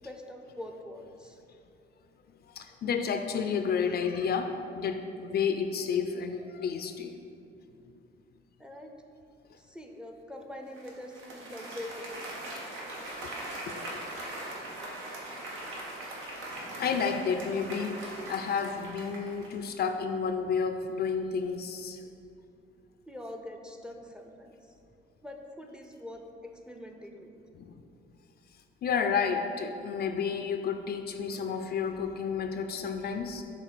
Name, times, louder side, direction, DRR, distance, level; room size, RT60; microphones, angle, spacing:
voice 1, 0.0-1.4 8.6-8.9 9.5-12.3 23.1-24.8 25.2-27.3, left 1 dB, 5° right, 3 dB, 0.5 m, -44 dB
voice 2, 2.5-7.2 13.7-13.9 16.3-16.4 16.8-22.0 27.6-27.8 28.8-33.4, left 6 dB, 55° left, 7 dB, 0.4 m, -31 dB
Applause, 10.8-19.7, right 1 dB, 85° right, 1.1 m, -40 dB
6.4 x 3.7 x 4.0 m, 2.6 s
cardioid pair, 90°, 20 cm